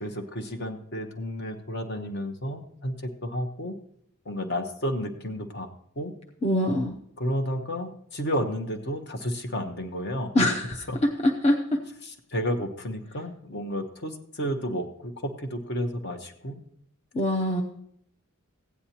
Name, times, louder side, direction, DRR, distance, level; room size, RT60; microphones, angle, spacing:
voice 1, 0.0-2.9 3.2-3.7 4.3-5.7 6.0-6.1 7.2-10.3 10.9-11.0 12.0-15.1 15.4-16.6, equal, 50° left, 5 dB, 1.0 m, -31 dB
voice 2, 6.4-6.9 10.3-11.8 17.1-17.6, left 1 dB, 30° left, 1 dB, 0.7 m, -24 dB
15.5 x 9.6 x 2.9 m, 0.68 s
head